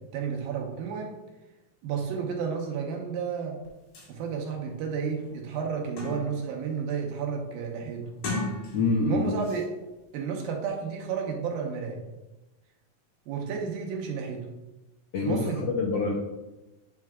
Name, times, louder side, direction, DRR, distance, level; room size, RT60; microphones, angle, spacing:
voice 1, 0.1-1.2 1.8-3.6 4.1-8.0 9.0-9.6 10.1-12.0 13.3-14.4 15.2-15.6, right 6 dB, 85° right, 1 dB, 2.8 m, -32 dB
sound 1, 3.6-3.7 4.0-4.1 4.7-4.8 5.2-6.5 6.9-7.3 8.1-9.1 9.4-9.7, left 2 dB, 70° left, 3.6 m, -36 dB
voice 2, 8.7-9.3 15.1-16.1, left 3 dB, 85° left, -2 dB, 1.3 m, -26 dB
8.6 x 6.1 x 2.4 m, 1.1 s
omnidirectional pair, 4.0 m